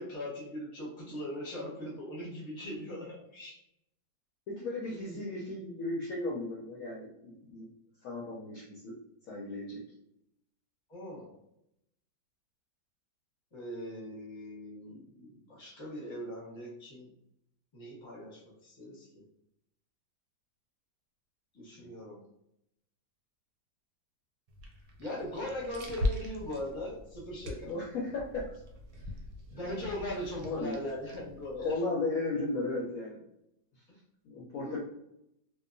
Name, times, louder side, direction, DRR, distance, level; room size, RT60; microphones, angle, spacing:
voice 1, 0.0-3.6 4.8-5.2 10.9-11.3 13.5-17.1 17.7-19.2 21.5-22.2 25.0-27.7 29.5-31.7 33.9-34.0 34.6-34.8, left 1 dB, 20° left, -5 dB, 0.7 m, -40 dB
voice 2, 4.5-7.7 8.0-8.9 9.3-9.8 21.8-21.9 27.6-28.4 29.5-29.7 30.4-30.8 31.6-33.2 34.2-34.8, left 2 dB, 70° left, -4 dB, 0.9 m, -35 dB
sound 1, 24.5-31.8, left 1 dB, 90° right, 1.3 m, -40 dB
2.8 x 2.2 x 2.5 m, 0.80 s
omnidirectional pair, 1.9 m